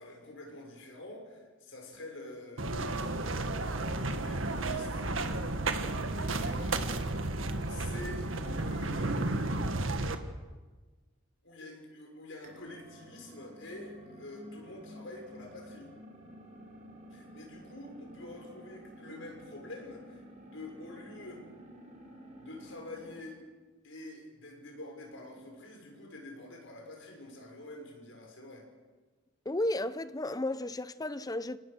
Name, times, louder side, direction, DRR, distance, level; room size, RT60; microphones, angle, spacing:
voice 1, 0.0-3.1 3.9-7.0 7.7-9.9 11.4-15.9 17.1-21.4 22.4-23.4 23.8-28.7, left 1 dB, 70° left, 6.5 m, -47 dB
sound 1, 2.6-10.2, right 2 dB, 80° right, 1.8 m, -32 dB
sound 2, 12.4-23.3, equal, 35° right, 5.4 m, -51 dB
voice 2, 29.5-31.6, left 1 dB, 20° left, 0.7 m, -33 dB
30.0 x 18.5 x 6.8 m
head